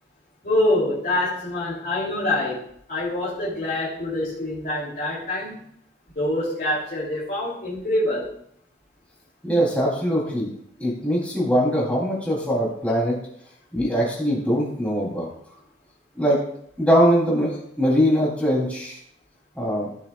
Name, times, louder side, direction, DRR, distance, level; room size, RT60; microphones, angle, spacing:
voice 1, 0.4-2.6 2.9-5.5 6.1-8.3, left 1 dB, 50° left, -8 dB, 3.2 m, -25 dB
voice 2, 9.4-10.5 10.8-13.2 13.7-15.3 16.2-16.4 16.8-19.0 19.6-19.9, equal, 5° left, -5 dB, 3.4 m, -22 dB
17.0 x 7.0 x 2.5 m, 0.69 s
head